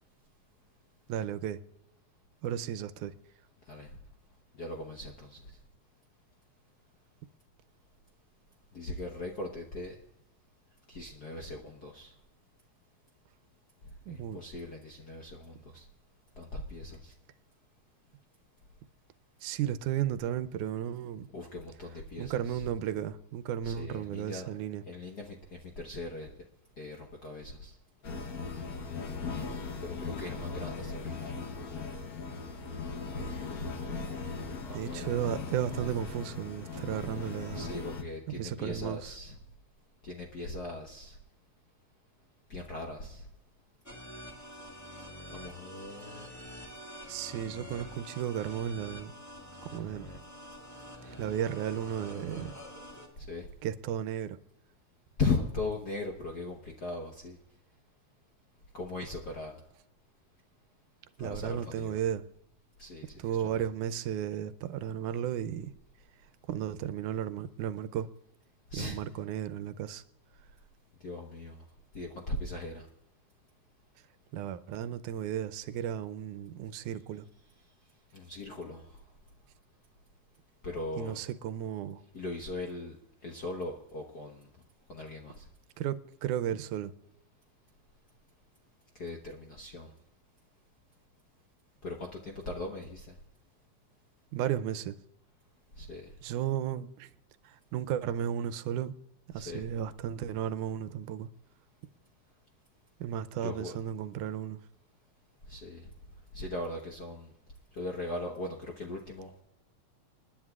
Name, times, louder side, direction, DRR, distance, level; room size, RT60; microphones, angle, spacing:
voice 1, 1.1-1.6 2.4-3.2 14.1-14.4 19.4-21.3 22.2-24.8 34.7-37.7 38.4-39.1 47.1-49.1 49.7-50.1 51.0-52.5 53.6-54.4 61.2-62.2 63.2-65.7 66.5-68.1 68.7-70.0 74.3-77.3 81.0-82.0 85.8-86.9 94.3-95.0 96.2-97.1 97.4-99.0 99.3-101.3 103.0-104.6, right 10 dB, 90° right, 2.2 m, -34 dB
voice 2, 4.6-5.4 8.7-10.0 10.9-12.1 14.1-15.8 16.4-17.1 21.3-22.7 23.6-24.5 24.9-25.4 25.6-26.3 26.8-27.7 29.8-31.3 34.2-35.1 37.5-39.4 40.0-41.2 42.5-43.3 45.3-46.4 53.2-53.5 55.2-57.4 58.7-59.5 61.2-62.0 62.8-63.7 68.7-69.0 71.0-71.6 71.9-72.9 78.1-79.0 80.6-81.2 82.1-83.0 83.2-84.5 84.9-85.4 89.0-89.9 91.8-93.1 95.8-96.1 99.4-99.6 103.4-103.8 105.5-105.9 106.3-107.3 107.8-109.3, left 2 dB, 55° left, 1.1 m, -39 dB
sound 1, 28.0-38.0, left 4 dB, 80° left, 0.8 m, -38 dB
sound 2, 43.9-53.1, equal, 5° left, 1.4 m, -46 dB
28.5 x 10.5 x 2.4 m
omnidirectional pair, 3.4 m